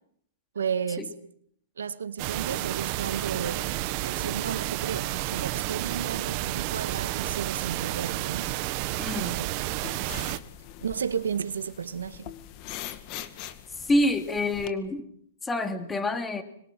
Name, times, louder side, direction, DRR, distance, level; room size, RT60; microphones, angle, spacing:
voice 1, 0.5-1.1 1.8-8.5 9.2-9.6 10.8-12.3, right 7 dB, 85° right, 1.9 m, -33 dB
sound 1, 2.2-10.4, right 17 dB, 40° right, 1.4 m, -31 dB
voice 2, 9.0-9.4 13.8-15.1 15.4-16.4, left 1 dB, 10° left, 2.8 m, -27 dB
sound 2, 9.6-14.7, left 11 dB, 40° left, 2.1 m, -42 dB
26.0 x 22.5 x 7.7 m
hypercardioid pair, 130°, 0 cm